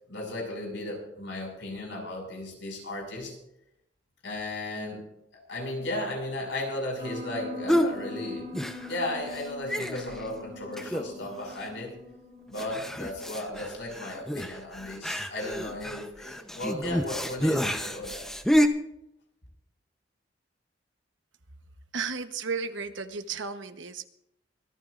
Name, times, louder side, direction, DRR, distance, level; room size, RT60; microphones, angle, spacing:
voice 1, 0.1-3.4 4.2-5.0 5.5-8.5 8.9-11.9 12.5-18.2, left 1 dB, 80° left, 1 dB, 6.1 m, -35 dB
Piano, 7.0-13.2, left 2 dB, 30° right, 5.8 m, -42 dB
sound 1, 7.7-8.0 8.5-9.1 9.3-9.4 9.7-10.3 10.8-11.3 11.6-11.7 12.6-18.7, equal, 5° left, 0.8 m, -29 dB
voice 2, 21.9-24.1, right 5 dB, 90° right, 8 dB, 1.1 m, -34 dB
24.5 x 13.0 x 2.6 m, 0.80 s
head